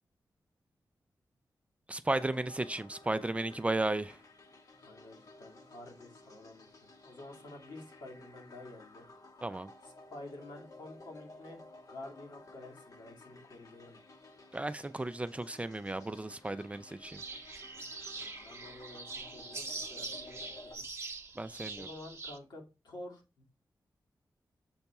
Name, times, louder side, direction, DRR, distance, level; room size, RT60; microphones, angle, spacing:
voice 1, 1.9-4.2 9.4-9.7 14.5-17.2 21.4-21.9, right 2 dB, 15° right, 0.4 m, -34 dB
sound 1, 2.1-20.7, left 2 dB, 55° left, 1.1 m, -55 dB
voice 2, 4.8-6.7 7.0-9.1 9.8-11.6 11.9-14.0 18.1-20.8 21.7-23.4, left 2 dB, 80° left, 2.1 m, -50 dB
sound 2, 17.1-22.4, right 3 dB, 35° right, 0.9 m, -43 dB
7.0 x 3.5 x 4.1 m
wide cardioid pair, 110°, 7 cm